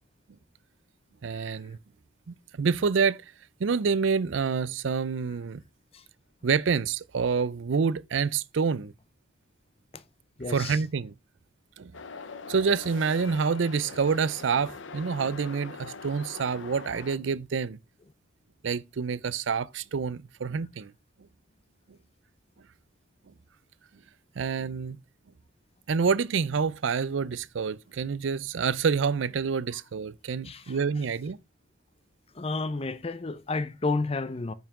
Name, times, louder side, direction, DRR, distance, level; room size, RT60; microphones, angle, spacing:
voice 1, 1.2-1.8 2.3-3.2 3.6-5.6 6.4-8.9 10.5-11.1 11.8-11.9 12.5-17.8 18.6-20.9 24.4-25.0 25.9-31.4, right 5 dB, 70° right, 0.5 m, -27 dB
voice 2, 10.4-10.8 18.0-18.1 29.7-29.8 30.4-31.0 32.3-34.5, left 3 dB, 30° left, 0.6 m, -32 dB
sound 1, 11.9-17.2, left 4 dB, 75° left, 0.8 m, -42 dB
9.1 x 5.6 x 3.7 m
head